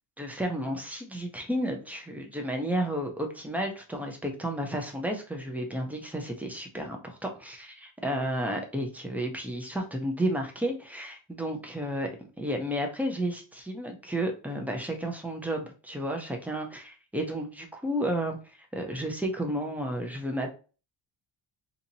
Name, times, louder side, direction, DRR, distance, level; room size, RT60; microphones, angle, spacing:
voice 1, 0.2-12.1 12.4-18.4 18.7-20.5, right 1 dB, 5° right, 2 dB, 0.4 m, -32 dB
2.8 x 2.7 x 3.9 m, 0.35 s
cardioid pair, 170°, 45 cm